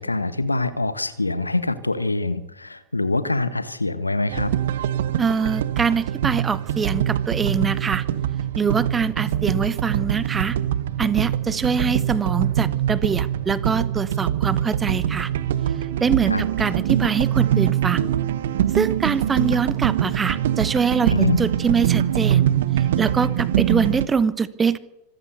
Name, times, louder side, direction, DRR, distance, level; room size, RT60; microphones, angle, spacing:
voice 1, 0.0-4.5 16.3-16.4 21.1-21.4, left 2 dB, 85° left, 14 dB, 1.4 m, -24 dB
sound 1, 4.3-24.1, right 10 dB, 60° right, 1.1 m, -23 dB
voice 2, 5.2-8.0 8.6-10.6 11.0-15.3 16.0-18.1 18.7-22.5 22.8-24.8, right 5 dB, 15° right, 18 dB, 1.1 m, -24 dB
25.5 x 14.5 x 6.9 m, 0.88 s
figure-of-eight pair, 90°, 0 cm